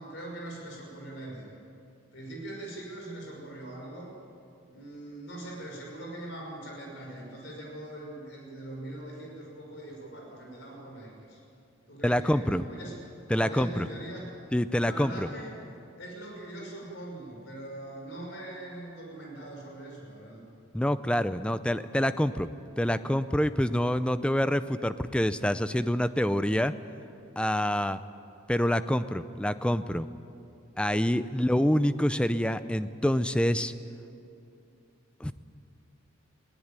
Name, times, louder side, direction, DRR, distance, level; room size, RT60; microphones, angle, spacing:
voice 1, 0.0-1.5 2.1-4.1 4.7-11.4 11.9-12.9 13.3-14.3 14.8-15.6 16.0-20.4 31.3-31.5, right 1 dB, 60° left, 0 dB, 5.7 m, -42 dB
voice 2, 12.0-12.6 13.3-13.9 14.5-15.3 20.7-22.5 22.8-26.7 27.4-28.0 28.5-30.1 30.8-33.7 35.2-35.3, equal, 5° left, 13 dB, 0.5 m, -26 dB
20.5 x 18.0 x 9.0 m, 2.6 s
head